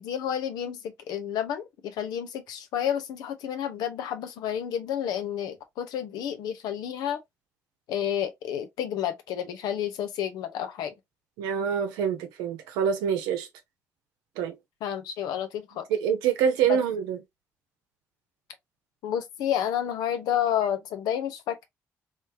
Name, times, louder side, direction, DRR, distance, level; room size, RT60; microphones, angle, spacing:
voice 1, 0.0-7.2 7.9-10.9 14.8-15.9 16.7-16.8 19.0-21.6, left 10 dB, 75° left, 0.7 m, -30 dB
voice 2, 11.4-13.5 14.4-14.6 15.9-17.2, right 8 dB, 85° right, 0.8 m, -26 dB
3.3 x 3.1 x 2.7 m
hypercardioid pair, 45°, 7 cm